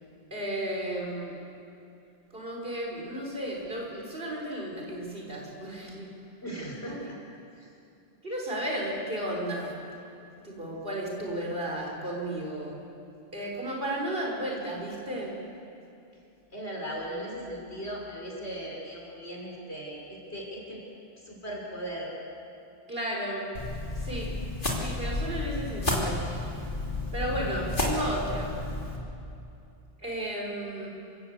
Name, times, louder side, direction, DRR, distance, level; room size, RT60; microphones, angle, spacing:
voice 1, 0.3-1.3 2.3-6.1 6.8-7.0 8.2-9.7 10.4-12.8 13.3-15.4 22.9-23.5 23.9-24.4 24.7-26.2 27.1-28.5 30.0-30.9, right 1 dB, 60° right, -2 dB, 5.1 m, -33 dB
voice 2, 6.4-7.2 7.6-7.7 16.5-20.0 20.3-20.8 21.3-22.1, right 1 dB, 80° left, -2 dB, 5.5 m, -37 dB
sound 1, 23.5-29.0, left 1 dB, 50° left, 3.4 m, -31 dB
27.5 x 16.5 x 8.2 m, 2.7 s
omnidirectional pair, 1.1 m